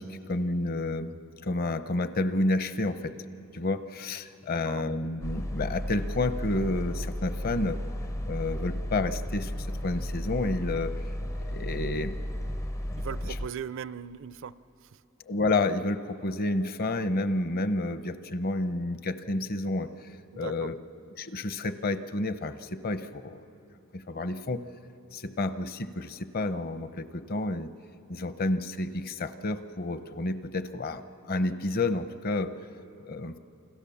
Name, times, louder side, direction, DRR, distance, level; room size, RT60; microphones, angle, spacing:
voice 1, 0.0-3.1 3.5-7.8 8.2-10.9 11.4-12.2 12.9-13.3 15.3-19.9 20.3-20.7 21.2-23.4 23.9-24.6 25.1-27.7 28.1-32.5 33.0-33.3, left 2 dB, 45° left, 11 dB, 0.8 m, -30 dB
voice 2, 4.5-4.8 13.0-14.6 14.8-15.0 20.3-20.7, right 7 dB, 60° right, 16 dB, 0.5 m, -39 dB
sound 1, 5.2-13.5, equal, 15° left, 0.5 m, -34 dB
29.0 x 25.0 x 7.1 m, 2.9 s
head